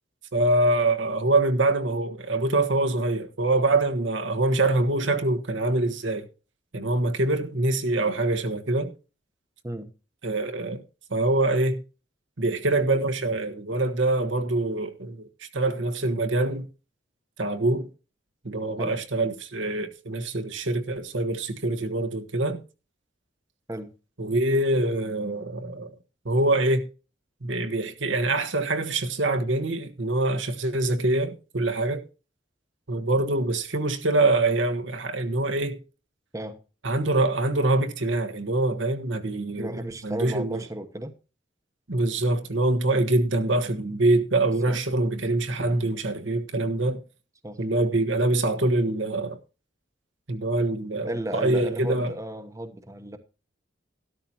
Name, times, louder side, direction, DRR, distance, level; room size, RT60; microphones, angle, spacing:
voice 1, 0.3-6.3 6.7-8.9 10.2-10.8 11.1-11.8 12.4-16.7 17.4-17.9 18.4-22.6 24.2-25.9 26.2-26.9 27.4-32.0 32.9-35.8 36.8-40.6 41.9-47.0 47.6-49.4 50.3-51.1 51.3-52.1, right 2 dB, 80° right, 1.4 m, -24 dB
voice 2, 39.6-41.1 44.7-44.8 47.4-47.6 51.0-53.2, right 1 dB, 15° right, 1.0 m, -34 dB
13.0 x 12.5 x 2.9 m
head